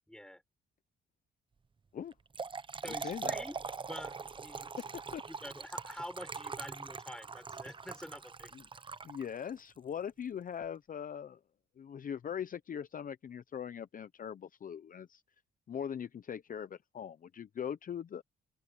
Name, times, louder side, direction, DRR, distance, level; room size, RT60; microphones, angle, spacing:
voice 1, 0.1-0.4 2.8-3.6 3.9-4.7 5.3-8.5, equal, 5° left, 4.9 m, -47 dB
Trickle dribble / Fill (with liquid), 2.1-9.6, right 5 dB, 25° right, 0.7 m, -42 dB
voice 2, 2.8-3.4 4.8-5.2 8.5-8.6 9.0-11.4 11.8-15.2 15.7-18.2, left 8 dB, 45° left, 0.7 m, -41 dB
open air
cardioid pair, 90°, 20 cm